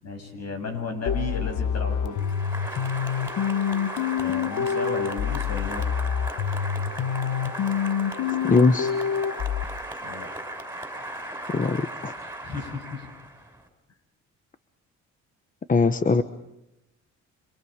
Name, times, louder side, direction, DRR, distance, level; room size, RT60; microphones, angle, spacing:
voice 1, 0.0-2.2 4.2-6.0 10.0-10.3 12.4-13.1, left 3 dB, 60° left, 6 dB, 7.0 m, -34 dB
sound 1, 1.1-9.6, left 8 dB, 75° left, 1.3 m, -27 dB
Applause, 2.1-13.6, right 1 dB, 10° right, 5.8 m, -37 dB
voice 2, 8.4-8.9 11.5-12.1 15.7-16.2, left 3 dB, 25° left, 11 dB, 1.1 m, -21 dB
30.0 x 26.0 x 5.2 m, 0.88 s
cardioid pair, 90°, 30 cm